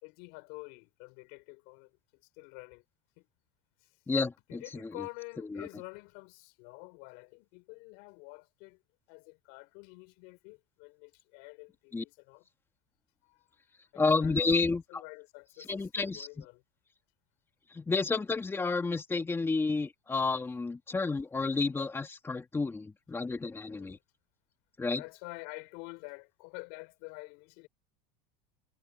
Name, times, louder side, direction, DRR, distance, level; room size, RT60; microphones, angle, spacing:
voice 1, 0.0-2.8 3.2-3.3 3.8-3.9 4.5-8.8 9.1-12.5 13.2-13.4 13.9-16.6 23.6-24.0 25.0-27.7, left 31 dB, 60° left, 4.9 m, -48 dB
voice 2, 4.1-5.0 5.5-5.7 11.9-12.0 14.0-15.0 15.6-16.4 17.7-24.0 24.8-25.0, left 3 dB, 10° left, 1.8 m, -31 dB
supercardioid pair, 130°, 20 cm